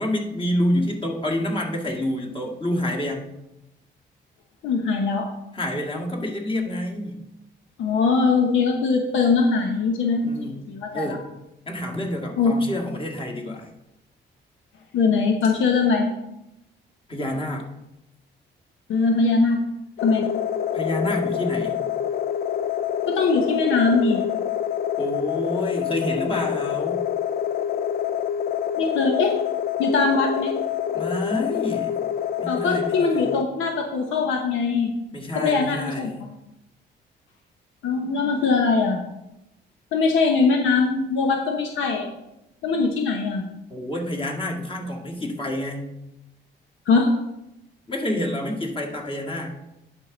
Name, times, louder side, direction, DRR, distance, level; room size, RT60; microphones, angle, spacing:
voice 1, 0.0-3.3 5.5-7.2 10.2-10.7 10.9-11.2 11.7-13.7 17.1-17.7 20.7-21.8 25.0-27.0 30.9-31.9 32.4-33.3 35.1-36.3 43.7-45.9 47.9-49.6, left 1 dB, 25° left, 0 dB, 1.9 m, -28 dB
voice 2, 4.6-5.3 7.8-11.1 12.4-12.5 14.9-16.1 18.9-19.6 20.0-20.2 23.1-24.2 28.8-29.3 29.8-30.5 32.5-34.9 35.3-36.1 37.8-39.0 39.9-42.1 42.6-43.4 46.9-47.1, left 4 dB, 80° left, 3 dB, 1.0 m, -21 dB
sound 1, 20.0-33.4, left 9 dB, 50° left, 0.4 m, -26 dB
11.0 x 4.8 x 3.9 m, 0.88 s
cardioid pair, 90°, 20 cm